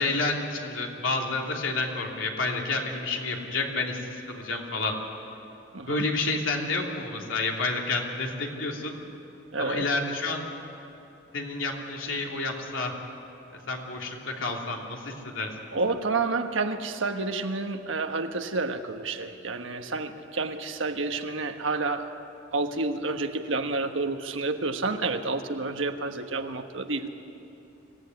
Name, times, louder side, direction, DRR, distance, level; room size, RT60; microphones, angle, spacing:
voice 1, 0.0-4.9 5.9-9.0 9.6-10.4 11.3-13.0 13.7-15.8, left 3 dB, 85° left, 0 dB, 3.0 m, -30 dB
voice 2, 5.7-6.1 9.5-9.9 15.7-22.1 22.5-27.1, right 3 dB, 80° right, 6 dB, 1.4 m, -29 dB
25.0 x 16.5 x 9.5 m, 3.0 s
head